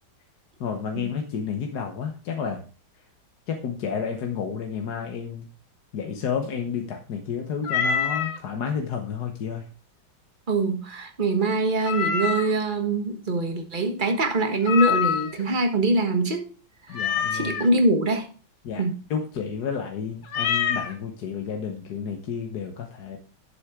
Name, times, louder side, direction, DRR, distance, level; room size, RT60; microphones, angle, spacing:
voice 1, 0.6-2.6 3.5-5.5 5.9-9.7 16.9-17.6 18.6-18.8 19.1-23.2, left 6 dB, 55° left, 3 dB, 1.5 m, -31 dB
Meow, 7.6-8.4 11.8-12.6 14.6-15.4 16.9-17.7 20.3-20.9, left 7 dB, 70° left, 2.0 m, -25 dB
voice 2, 10.5-16.5 16.9-17.0 17.3-18.3 18.8-18.9, right 2 dB, 25° right, 4 dB, 1.4 m, -23 dB
11.5 x 7.6 x 3.6 m, 0.37 s
omnidirectional pair, 2.2 m